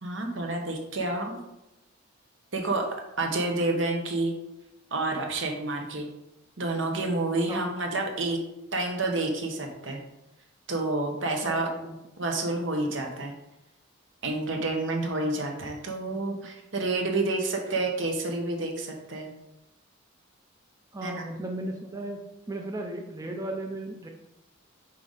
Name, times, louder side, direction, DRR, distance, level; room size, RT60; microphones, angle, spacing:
voice 1, 0.0-1.4 2.5-2.8 3.2-4.3 4.9-6.1 6.6-8.4 8.7-10.0 10.7-11.7 12.2-13.3 14.2-19.3 21.0-21.2, right 2 dB, 65° right, 2 dB, 1.2 m, -29 dB
voice 2, 11.4-12.0 20.9-24.1, right 1 dB, 15° right, 1 dB, 0.5 m, -36 dB
5.6 x 4.9 x 4.1 m, 0.91 s
head